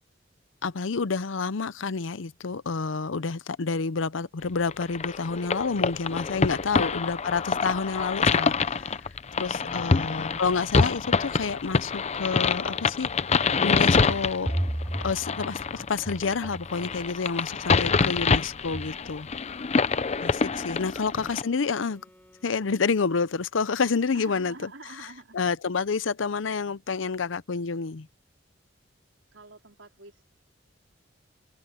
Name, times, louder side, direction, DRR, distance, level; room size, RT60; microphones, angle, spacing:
voice 1, 0.6-9.1 9.4-13.1 13.6-14.5 15.0-19.3 20.2-22.0 22.4-24.7 25.3-28.1, left 4 dB, 85° left, 0.7 m, -29 dB
sound 1, 4.7-21.4, left 4 dB, 35° left, 0.6 m, -26 dB
voice 2, 9.5-10.0 17.7-18.2 20.0-21.3 24.1-25.4 29.3-30.2, right 3 dB, 80° right, 4.2 m, -49 dB
sound 2, 13.2-16.7 18.1-18.4 18.7-19.1, right 1 dB, 5° right, 0.5 m, -34 dB
Wind instrument woodwind instrument, 19.7-23.6, equal, 10° left, 6.6 m, -60 dB
head